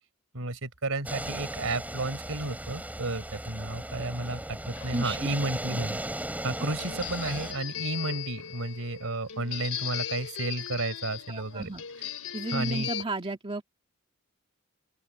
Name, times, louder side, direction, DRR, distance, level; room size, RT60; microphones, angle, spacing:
voice 1, 0.3-6.0 6.4-11.7 12.5-12.9, right 2 dB, 65° right, 4.1 m, -32 dB
sound 1, 1.0-7.5, right 1 dB, 5° right, 3.5 m, -37 dB
sound 2, 4.8-13.0, left 9 dB, 70° left, 4.8 m, -38 dB
voice 2, 11.3-11.8 12.3-13.6, right 2 dB, 25° right, 2.1 m, -33 dB
open air
head